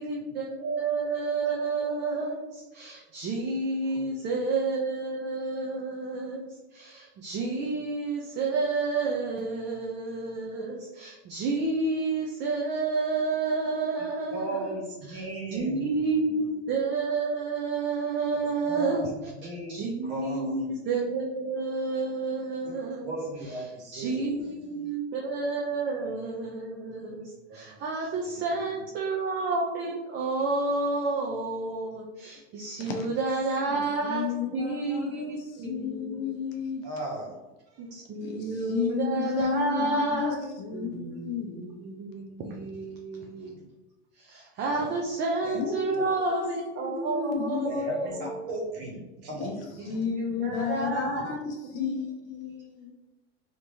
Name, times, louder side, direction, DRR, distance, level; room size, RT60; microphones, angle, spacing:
voice 1, 0.0-14.8 15.1-15.2 15.5-19.1 19.7-23.1 23.9-36.3 37.8-40.4 40.7-43.6 44.2-48.5 49.8-51.4 51.8-51.9, right 3 dB, 30° right, -1 dB, 0.5 m, -30 dB
voice 2, 3.9-4.3 14.3-16.5 18.6-20.7 22.6-22.8 23.0-24.9 27.5-28.3 32.7-32.8 33.8-33.9 36.8-37.3 37.7-37.8 43.5-43.6 44.7-45.0 45.4-45.6 45.9-46.0 47.6-50.0 50.4-50.9 51.2-51.3, right 2 dB, 60° right, -2 dB, 1.5 m, -38 dB
voice 3, 33.7-36.8 38.2-42.0 45.5-47.9 49.3-52.9, left 6 dB, 45° left, 3 dB, 0.7 m, -33 dB
3.5 x 2.9 x 2.7 m, 1.1 s
supercardioid pair, 130°, 35 cm